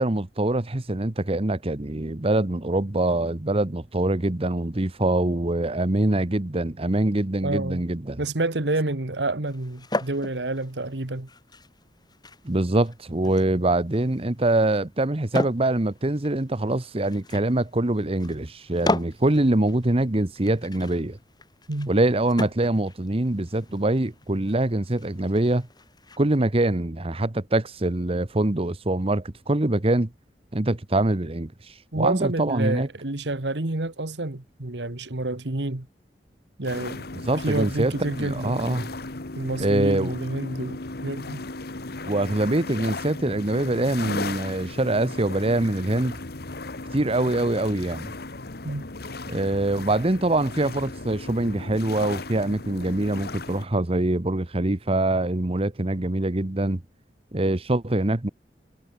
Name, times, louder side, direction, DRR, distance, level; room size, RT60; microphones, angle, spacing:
voice 1, 0.0-8.2 12.4-21.2 21.9-25.7 26.2-30.1 30.5-31.5 32.0-32.9 37.3-37.9 38.2-38.9 39.6-40.1 42.1-46.2 46.9-48.1 49.3-56.8 57.3-58.3, right 2 dB, 35° right, 1.1 m, -24 dB
voice 2, 7.4-7.8 8.2-11.3 21.7-21.9 31.9-35.9 36.6-37.1 37.4-38.6 39.4-41.4 48.6-48.9, right 2 dB, 85° right, 1.7 m, -28 dB
sound 1, 9.5-26.2, left 2 dB, 25° left, 6.4 m, -37 dB
sound 2, 36.7-53.7, left 2 dB, 65° left, 1.7 m, -36 dB
head